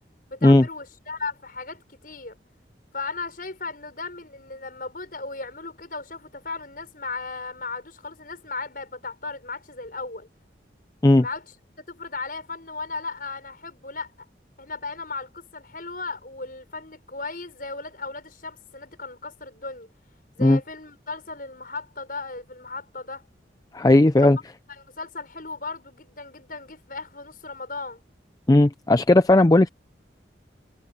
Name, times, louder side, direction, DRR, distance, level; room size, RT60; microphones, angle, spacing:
voice 1, 0.3-2.4 2.9-10.3 11.2-11.4 11.8-14.1 14.6-19.9 20.3-23.2 24.1-24.3 24.7-28.0, left 3 dB, 50° left, 6.3 m, -36 dB
voice 2, 23.7-24.4 28.5-29.7, left 2 dB, 20° left, 0.4 m, -16 dB
head